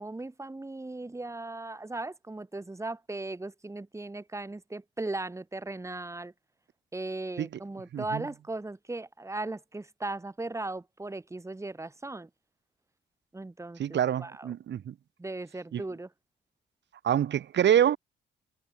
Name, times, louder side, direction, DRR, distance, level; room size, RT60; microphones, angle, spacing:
voice 1, 0.0-6.3 6.9-12.3 13.3-14.5 15.2-16.1, right 2 dB, 15° right, 3.3 m, -37 dB
voice 2, 7.9-8.3 13.8-14.9 15.7-15.8 17.0-18.0, right 10 dB, 65° right, 3.5 m, -26 dB
cardioid pair, 90°, 20 cm